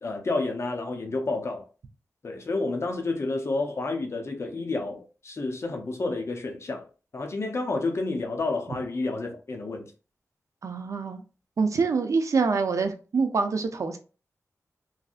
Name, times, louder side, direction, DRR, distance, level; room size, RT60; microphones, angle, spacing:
voice 1, 0.0-1.7 2.2-6.8 7.1-9.9, left 3 dB, 50° left, 0.7 m, -30 dB
voice 2, 10.6-11.2 11.6-14.0, right 4 dB, 65° right, 0.5 m, -25 dB
3.1 x 2.6 x 2.4 m
wide cardioid pair, 85°, 6 cm